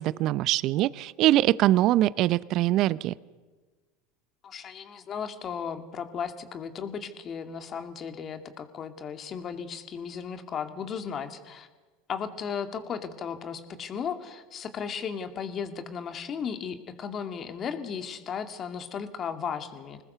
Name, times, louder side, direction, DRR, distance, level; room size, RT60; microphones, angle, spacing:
voice 1, 0.0-3.1, right 15 dB, 50° right, 19 dB, 0.6 m, -23 dB
voice 2, 4.4-11.7 12.1-20.0, left 7 dB, 35° left, 7 dB, 2.4 m, -35 dB
26.5 x 20.0 x 6.9 m, 1.3 s
hypercardioid pair, 80°, 0 cm